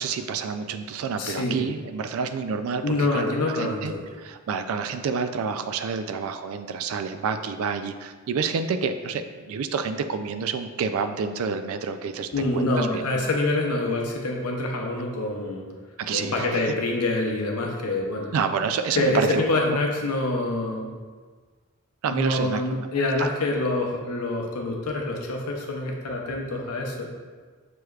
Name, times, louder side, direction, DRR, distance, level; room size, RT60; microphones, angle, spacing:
voice 1, 0.0-3.3 3.6-13.0 16.0-16.7 18.3-19.8 22.0-23.3, right 5 dB, 70° right, 9 dB, 0.3 m, -29 dB
voice 2, 1.2-1.6 2.8-4.0 12.3-15.7 16.1-18.3 18.9-20.9 22.1-27.1, left 2 dB, 90° left, 1 dB, 0.7 m, -26 dB
6.0 x 3.2 x 2.3 m, 1.5 s
head